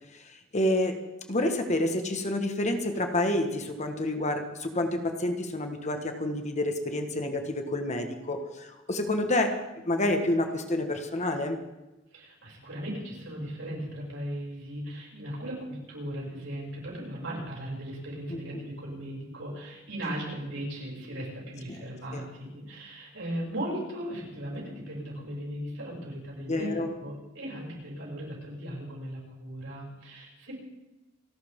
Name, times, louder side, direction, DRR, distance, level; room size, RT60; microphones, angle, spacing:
voice 1, 0.1-1.0 1.3-9.5 9.8-11.6 18.3-18.7 22.1-22.2 26.5-26.9, left 1 dB, 35° left, 5 dB, 1.6 m, -29 dB
voice 2, 12.1-30.6, right 1 dB, 65° right, -3 dB, 7.1 m, -37 dB
29.0 x 12.5 x 3.7 m, 1.0 s
head